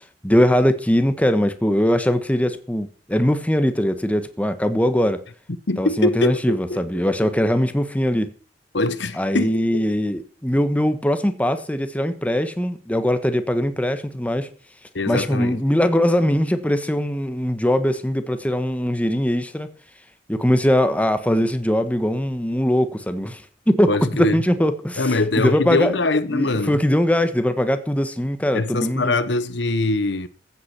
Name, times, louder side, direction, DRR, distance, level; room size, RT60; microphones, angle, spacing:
voice 1, 0.2-5.2 5.8-8.3 9.2-14.5 15.1-19.7 20.3-25.0 25.4-25.9 26.3-29.1, equal, 10° left, 1.3 m, -21 dB
voice 2, 5.7-7.3 8.7-9.8 14.9-15.6 23.9-24.4 25.0-26.8 28.5-30.3, left 2 dB, 70° left, 1.1 m, -23 dB
15.0 x 8.5 x 6.0 m
head